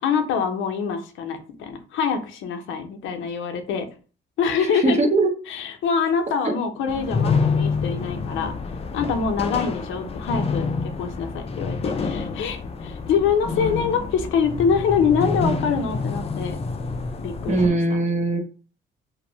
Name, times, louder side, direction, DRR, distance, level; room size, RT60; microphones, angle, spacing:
voice 1, 0.0-3.9 4.4-5.0 5.5-8.5 8.9-16.6 17.2-17.8, left 6 dB, 85° left, 6 dB, 0.5 m, -25 dB
voice 2, 4.6-5.3 6.4-6.5 17.5-18.4, right 2 dB, 35° right, 4 dB, 0.7 m, -21 dB
sound 1, 6.9-17.7, left 4 dB, 30° left, 0.4 m, -27 dB
2.5 x 2.0 x 3.0 m, 0.37 s
cardioid pair, 90°, 20 cm